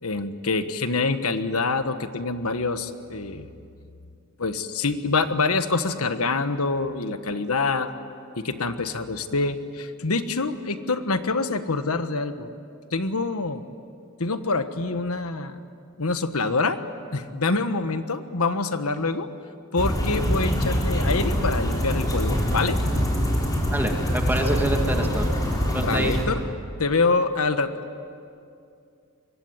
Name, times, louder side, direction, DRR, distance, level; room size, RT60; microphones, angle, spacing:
voice 1, 0.0-3.5 4.4-7.9 8.4-12.5 12.9-13.6 14.2-15.6 16.0-16.8 17.1-19.3 19.7-22.8 25.8-26.4 26.8-27.7, left 3 dB, 80° left, 10 dB, 1.4 m, -25 dB
sound 1, 19.8-26.2, equal, 15° left, 4.2 m, -24 dB
voice 2, 23.7-25.2 25.7-26.1, right 1 dB, 10° right, 2 dB, 2.2 m, -26 dB
25.5 x 22.5 x 9.5 m, 2.5 s
head